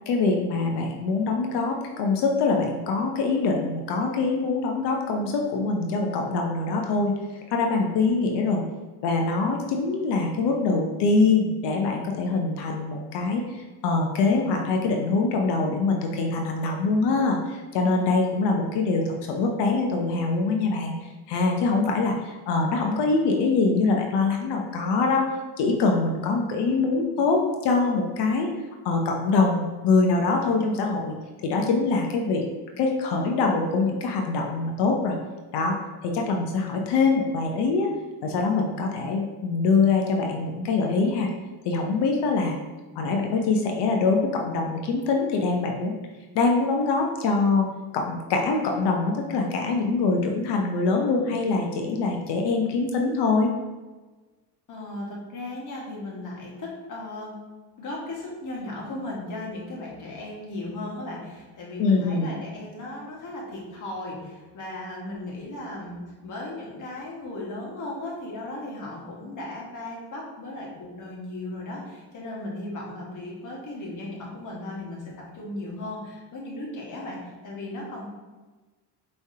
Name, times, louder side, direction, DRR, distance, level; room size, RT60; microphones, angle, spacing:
voice 1, 0.1-7.1 7.5-8.6 9.0-20.9 21.3-25.2 25.6-28.5 28.8-31.1 31.4-32.4 32.8-35.2 35.5-35.8 36.0-37.9 38.2-41.3 41.6-42.6 43.0-45.9 46.3-47.7 47.9-53.5 61.8-62.3, left 3 dB, 80° left, 2 dB, 0.7 m, -24 dB
voice 2, 54.7-57.4 57.8-78.1, left 1 dB, 50° left, -3 dB, 1.5 m, -36 dB
4.7 x 3.2 x 2.7 m, 1.3 s
cardioid pair, 105°, 40 cm